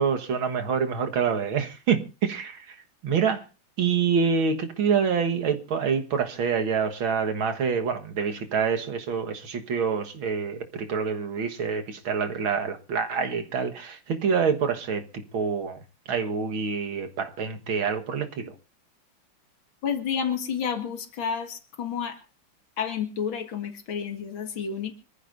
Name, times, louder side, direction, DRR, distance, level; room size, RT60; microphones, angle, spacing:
voice 1, 0.0-2.8 3.0-3.5 3.8-15.8 16.1-18.5, right 6 dB, 85° right, 2.3 m, -26 dB
voice 2, 19.8-22.2 22.8-24.9, left 7 dB, 80° left, 2.6 m, -30 dB
25.5 x 14.5 x 2.6 m
omnidirectional pair, 2.2 m